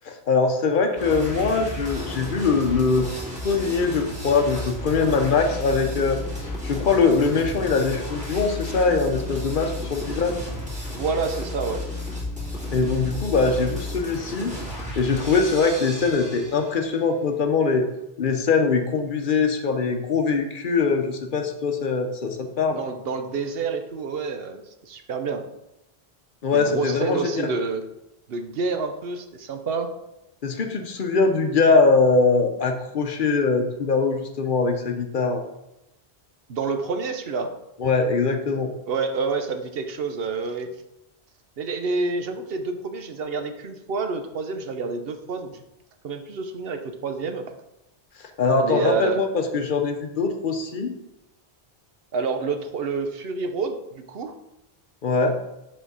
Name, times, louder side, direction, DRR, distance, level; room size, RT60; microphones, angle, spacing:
voice 1, 0.0-3.1 3.4-6.2 6.6-10.4 12.7-14.5 14.9-17.9 18.2-22.8 26.4-27.2 30.4-35.4 37.8-38.7 48.4-50.9 55.0-55.4, left 4 dB, 55° left, 6 dB, 0.9 m, -22 dB
sound 1, 1.0-16.9, left 1 dB, 5° right, 2.1 m, -33 dB
voice 2, 10.9-11.8 22.7-25.4 26.5-27.8 28.3-29.9 36.5-37.5 38.9-40.7 41.6-45.6 46.0-47.4 48.6-49.2 52.1-54.3, right 4 dB, 70° right, 7 dB, 0.9 m, -28 dB
5.9 x 4.3 x 5.4 m, 0.90 s
omnidirectional pair, 1.1 m